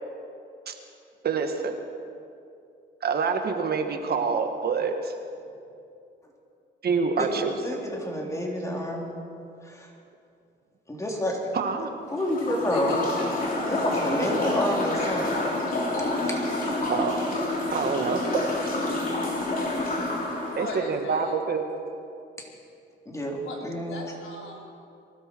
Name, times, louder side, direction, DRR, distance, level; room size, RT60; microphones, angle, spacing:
voice 1, 1.2-1.8 3.0-5.1 6.8-7.5 11.5-11.9 16.9-17.2 17.7-18.2 18.6-18.7 20.6-21.6, right 5 dB, 50° right, 5 dB, 1.7 m, -26 dB
voice 2, 7.6-9.2 9.6-9.9 10.9-11.5 12.1-13.0 13.7-15.4 16.3-16.4 19.6-19.7 23.1-24.0, left 1 dB, 15° left, -1 dB, 3.6 m, -29 dB
sound 1, 12.1-20.8, left 2 dB, 45° left, 3.6 m, -28 dB
voice 3, 12.7-13.5 19.6-19.8 20.5-21.4 23.4-23.6 23.8-24.7, left 2 dB, 85° left, -1 dB, 3.4 m, -37 dB
23.0 x 13.0 x 4.7 m, 2.5 s
cardioid pair, 90°, 20 cm